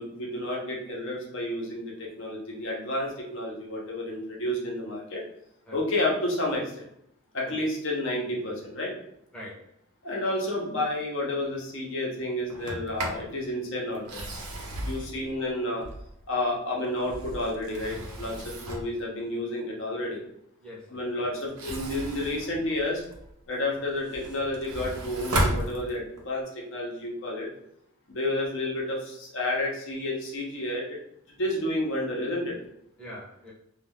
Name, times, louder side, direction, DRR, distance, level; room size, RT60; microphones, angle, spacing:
voice 1, 0.0-5.2 5.7-6.9 7.3-8.9 10.0-14.2 14.7-15.8 16.3-20.2 20.9-23.0 23.5-27.5 28.1-31.0 31.3-32.6, left 1 dB, 60° left, -2 dB, 0.7 m, -30 dB
voice 2, 9.3-9.7 20.6-21.3 33.0-33.5, left 1 dB, 5° left, -7 dB, 0.7 m, -44 dB
Sliding door, 12.5-13.3 13.9-16.3 16.8-19.0 21.4-23.3 23.8-26.3, right 1 dB, 90° right, 0.6 m, -34 dB
2.3 x 2.3 x 3.4 m, 0.75 s
head